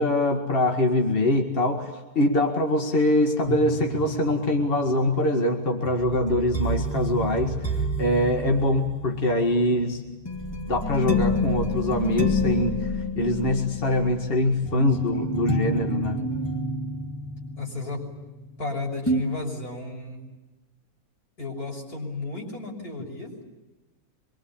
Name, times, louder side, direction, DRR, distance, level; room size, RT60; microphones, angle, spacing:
voice 1, 0.0-10.0 10.7-16.2, left 1 dB, 40° left, 2 dB, 2.2 m, -24 dB
sound 1, 3.4-18.7 19.1-19.2, left 1 dB, 15° left, 2.7 m, -29 dB
voice 2, 17.5-18.0 18.6-20.2 21.4-23.3, left 3 dB, 80° left, 0 dB, 6.7 m, -33 dB
25.5 x 23.0 x 8.8 m, 1.2 s
omnidirectional pair, 1.6 m